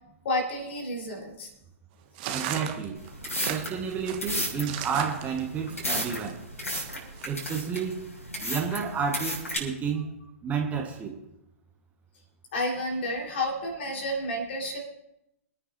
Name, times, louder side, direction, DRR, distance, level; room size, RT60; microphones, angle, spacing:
voice 1, 0.2-1.5 12.5-14.8, left 1 dB, 50° left, 1 dB, 4.5 m, -30 dB
sound 1, 2.2-6.3 6.7-7.3, right 10 dB, 40° right, 1.4 m, -35 dB
voice 2, 2.3-3.0 3.5-6.4 7.2-8.1 8.4-10.0 10.4-11.1, right 6 dB, 20° right, 2 dB, 1.6 m, -31 dB
sound 2, 2.9-9.6, equal, 80° left, 6.6 m, -34 dB
27.5 x 10.0 x 2.8 m, 0.88 s
figure-of-eight pair, 110°, 8 cm